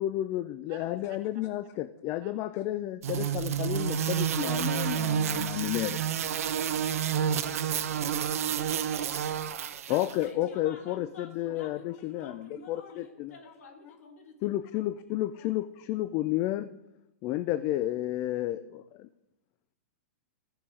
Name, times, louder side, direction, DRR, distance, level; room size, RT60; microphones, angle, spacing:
voice 1, 0.0-6.0 9.9-13.3 14.4-16.7 17.2-19.1, left 14 dB, 30° left, 13 dB, 0.3 m, -31 dB
sound 1, 3.0-10.2, right 9 dB, 80° right, 0.7 m, -29 dB
voice 2, 6.3-9.2 9.5-10.1, right 8 dB, 35° right, 5 dB, 1.3 m, -52 dB
voice 3, 10.2-14.5, left 3 dB, 75° left, 5 dB, 2.0 m, -49 dB
14.5 x 5.6 x 4.9 m, 0.87 s
hypercardioid pair, 150°, 8 cm